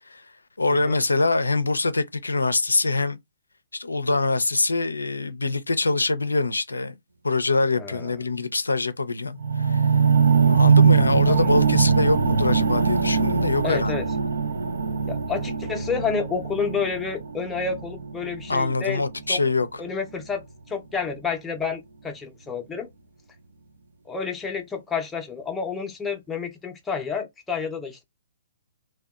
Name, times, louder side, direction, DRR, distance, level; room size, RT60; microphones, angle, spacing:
voice 1, 0.6-3.2 3.7-7.0 7.2-9.9 10.5-14.0 18.5-19.7, left 3 dB, 85° left, 0.4 m, -24 dB
voice 2, 7.7-8.2 11.3-11.5 13.6-14.1 15.0-19.0 19.3-19.4 19.8-22.9 24.1-28.0, left 5 dB, 10° left, 0.6 m, -30 dB
sound 1, 9.4-19.5 20.2-20.3, right 5 dB, 70° right, 0.5 m, -22 dB
2.6 x 2.2 x 2.3 m
figure-of-eight pair, 130°, 0 cm